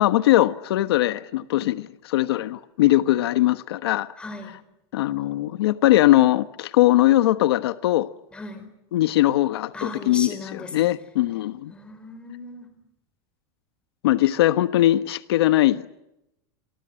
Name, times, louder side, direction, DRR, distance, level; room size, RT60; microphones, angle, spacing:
voice 1, 0.0-4.1 4.9-8.1 8.9-11.7 14.0-16.0, left 15 dB, 80° left, 1.3 m, -20 dB
voice 2, 4.2-4.6 8.3-8.7 9.7-10.8 11.7-12.7, left 2 dB, 10° left, 4.3 m, -36 dB
28.5 x 24.5 x 7.7 m
supercardioid pair, 175°, 13 cm